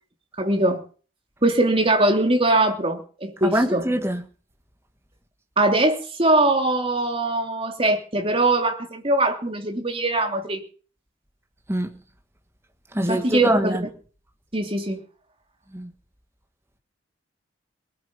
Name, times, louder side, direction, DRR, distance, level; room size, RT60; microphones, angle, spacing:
voice 1, 0.4-0.8 1.4-3.8 5.6-10.6 13.0-13.8 14.5-15.0, right 2 dB, 30° right, 3.0 m, -21 dB
voice 2, 3.4-4.3 11.7-12.0 12.9-13.8 15.7-15.9, right 1 dB, 15° right, 1.9 m, -23 dB
23.0 x 9.5 x 5.4 m
head